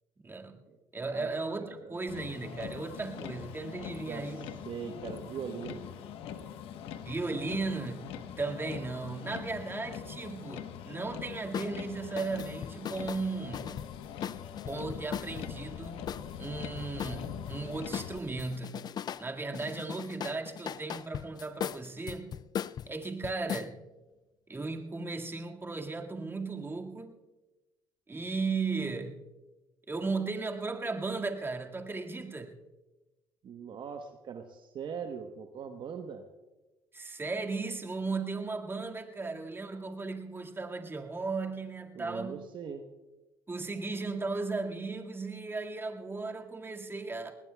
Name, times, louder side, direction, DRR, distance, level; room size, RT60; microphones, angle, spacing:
voice 1, 0.2-0.6 0.9-4.5 7.1-13.8 14.7-16.1 16.4-18.9 19.2-22.4 22.9-23.8 24.5-27.2 28.1-29.2 29.9-32.6 36.9-42.5 43.5-47.3, right 3 dB, 25° right, 1 dB, 2.0 m, -36 dB
voice 2, 1.6-1.9 3.8-4.2 4.7-5.8 33.4-36.2 41.9-42.8, right 7 dB, 55° right, 6 dB, 1.1 m, -41 dB
Motor vehicle (road), 2.1-18.2, left 8 dB, 75° left, 1.1 m, -43 dB
sound 1, 11.5-11.7 12.2-15.5 16.1-17.6 17.9-19.3 19.5-23.7, left 9 dB, 45° left, 0.4 m, -39 dB
24.0 x 19.5 x 2.3 m, 1.1 s
supercardioid pair, 65°, 10 cm